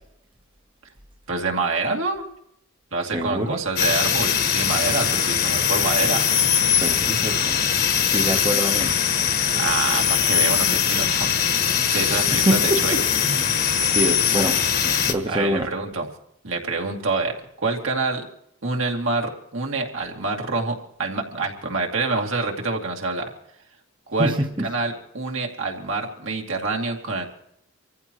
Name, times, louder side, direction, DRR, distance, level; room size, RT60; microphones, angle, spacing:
voice 1, 1.3-2.3 2.9-6.3 9.5-11.4 11.9-13.0 15.3-16.1 16.4-17.4 17.6-18.2 18.6-23.3 24.1-24.3 24.6-27.3, right 3 dB, 70° right, 1 dB, 2.5 m, -26 dB
voice 2, 3.1-3.6 6.8-7.5 8.1-8.9 12.3-12.8 13.2-13.6 13.9-14.6 15.1-15.7 24.2-24.7, right 1 dB, 25° right, 2 dB, 0.9 m, -25 dB
sound 1, 3.8-15.1, left 8 dB, 45° left, 1.4 m, -21 dB
26.0 x 15.0 x 3.0 m, 0.75 s
head